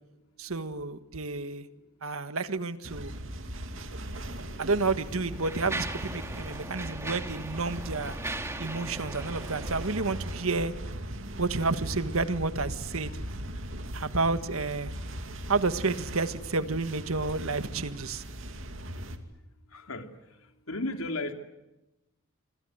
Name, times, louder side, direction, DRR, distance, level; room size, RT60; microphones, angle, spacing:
voice 1, 0.4-1.7 2.0-3.1 4.6-8.2 8.6-10.7 11.4-13.2 13.9-14.9 15.5-18.2, right 3 dB, 85° right, 1.6 m, -30 dB
sound 1, 2.8-19.2, right 1 dB, 65° right, 2.6 m, -39 dB
Mechanisms, 4.0-4.2 4.9-10.7, right 2 dB, 15° right, 2.2 m, -40 dB
voice 2, 19.7-21.3, left 2 dB, 90° left, 3.1 m, -35 dB
27.0 x 26.0 x 8.0 m
head